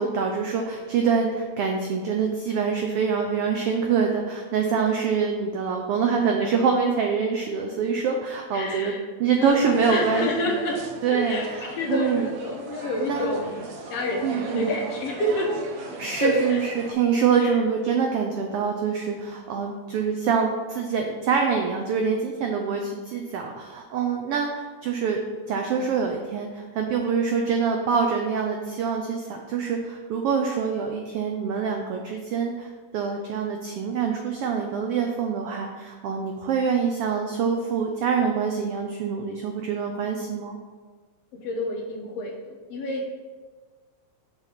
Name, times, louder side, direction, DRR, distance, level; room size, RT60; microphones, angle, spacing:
voice 1, 0.0-8.9 9.2-12.3 13.1-13.3 14.2-14.7 16.0-25.2 25.5-40.6, right 6 dB, 85° right, 2 dB, 1.3 m, -25 dB
voice 2, 8.5-9.0 9.4-10.8 11.1-11.5 11.7-13.6 13.9-15.5 16.2-16.6 17.4-17.6 41.3-43.1, left 1 dB, 65° left, -1 dB, 1.8 m, -28 dB
sound 1, 9.5-16.9, right 2 dB, 70° right, 2.0 m, -37 dB
7.0 x 4.0 x 6.0 m, 1.4 s
omnidirectional pair, 3.4 m